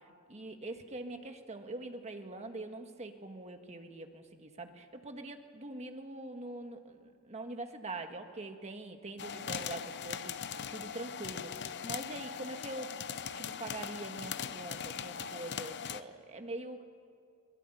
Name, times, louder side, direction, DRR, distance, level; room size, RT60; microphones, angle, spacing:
voice 1, 0.3-12.9 13.3-16.8, right 2 dB, 30° right, 6 dB, 1.7 m, -44 dB
sound 1, 9.2-16.0, left 7 dB, 50° left, 0.8 m, -40 dB
23.0 x 20.5 x 9.2 m, 2.2 s
head